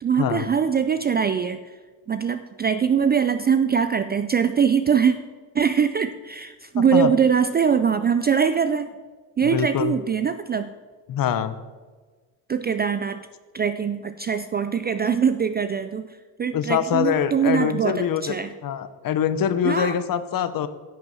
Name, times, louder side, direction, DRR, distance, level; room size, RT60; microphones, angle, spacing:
voice 1, 0.0-1.8 2.1-5.1 5.5-8.9 9.4-10.7 12.5-13.2 13.5-18.5 19.6-20.0, right 7 dB, 25° right, 11 dB, 0.3 m, -22 dB
voice 2, 6.8-7.1 9.4-10.0 11.1-11.6 16.5-18.2 18.6-20.7, left 8 dB, 45° left, 13 dB, 0.9 m, -24 dB
10.5 x 6.9 x 7.6 m, 1.4 s
cardioid pair, 110°, 46 cm